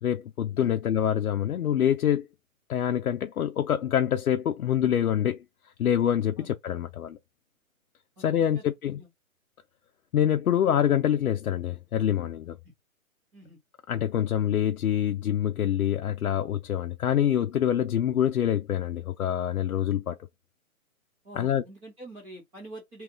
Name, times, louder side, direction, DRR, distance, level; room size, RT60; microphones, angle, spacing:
voice 1, 0.0-2.3 2.7-5.4 5.8-7.2 8.2-9.0 10.1-12.6 13.9-20.2 21.3-21.6, left 10 dB, 75° left, 0.6 m, -26 dB
voice 2, 21.2-23.0, right 1 dB, 10° right, 0.6 m, -45 dB
2.8 x 2.4 x 3.5 m
hypercardioid pair, 140°, 43 cm